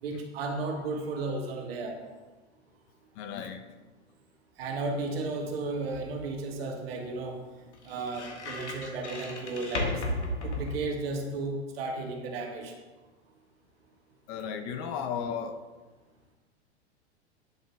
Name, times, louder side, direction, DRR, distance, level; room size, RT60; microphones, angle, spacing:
voice 1, 0.0-2.0 4.6-7.4 7.8-10.0 10.3-12.7, right 3 dB, 60° right, 2 dB, 1.5 m, -34 dB
voice 2, 3.1-3.6 14.3-15.6, left 7 dB, 35° left, 7 dB, 0.6 m, -35 dB
sound 1, 5.1-11.4, left 1 dB, 75° left, 1.6 m, -37 dB
9.0 x 7.7 x 2.2 m, 1.3 s
figure-of-eight pair, 100°, 34 cm